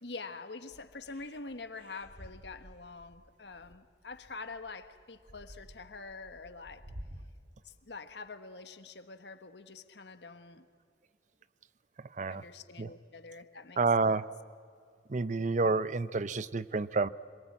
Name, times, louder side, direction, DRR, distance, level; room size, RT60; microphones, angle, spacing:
voice 1, 0.0-6.9 7.6-10.6 12.3-14.2, left 3 dB, 75° left, 1.4 m, -46 dB
sound 1, 0.7-7.2, equal, 85° right, 2.4 m, -51 dB
voice 2, 13.8-14.3 15.1-17.1, right 3 dB, 45° right, 0.6 m, -29 dB
26.5 x 23.0 x 8.7 m
head